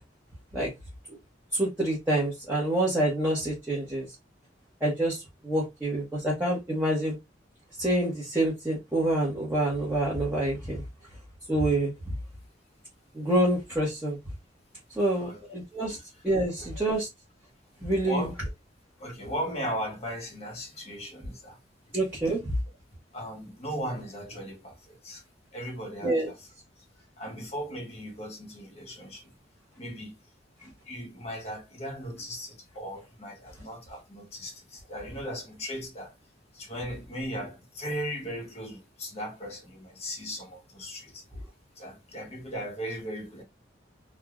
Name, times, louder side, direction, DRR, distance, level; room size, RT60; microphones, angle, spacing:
voice 1, 1.5-4.1 4.8-7.2 7.8-10.8 11.5-11.9 13.1-14.2 15.0-16.0 16.2-17.1 17.8-18.3 21.9-22.5 26.0-26.3, right 1 dB, 10° right, 0.8 m, -27 dB
voice 2, 18.1-18.4 19.0-21.6 23.1-25.2 25.5-26.3 27.0-29.3 29.8-30.2 30.6-36.1 36.5-41.4 41.8-43.4, equal, 35° left, 0.8 m, -37 dB
3.2 x 2.1 x 2.3 m
head